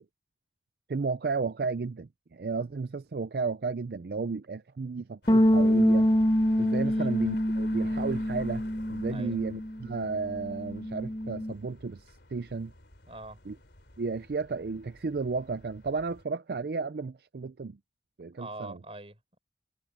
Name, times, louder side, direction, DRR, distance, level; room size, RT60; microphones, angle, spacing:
voice 1, 0.9-6.1 6.6-12.7 13.5-13.6 14.0-17.8 18.2-18.8, right 4 dB, 60° right, 0.4 m, -33 dB
sound 1, 5.2-16.2, left 2 dB, 85° left, 3.2 m, -51 dB
sound 2, 5.3-9.8 10.1-11.5, equal, 25° left, 0.8 m, -26 dB
voice 2, 9.1-9.4 13.1-13.4 18.4-19.4, right 2 dB, 35° right, 5.5 m, -44 dB
head